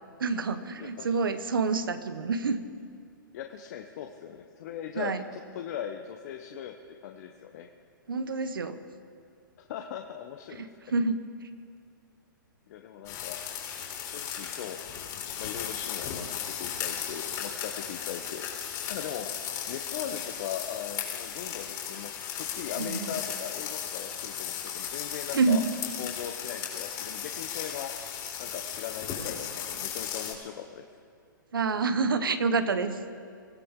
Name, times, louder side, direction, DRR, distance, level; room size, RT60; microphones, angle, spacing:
voice 1, 0.2-2.6 4.9-5.2 8.1-8.8 10.5-11.2 22.8-23.1 25.3-25.7 31.5-33.0, right 4 dB, 80° right, 10 dB, 1.2 m, -27 dB
voice 2, 3.3-7.7 9.6-10.7 12.7-13.4 14.0-14.8 15.4-19.3 19.7-25.6 26.0-27.9 28.4-30.8, left 9 dB, 50° left, 5 dB, 1.0 m, -39 dB
sound 1, 13.0-30.3, left 9 dB, 35° left, 3.9 m, -36 dB
24.0 x 15.0 x 3.7 m, 2.2 s
hypercardioid pair, 125°, 11 cm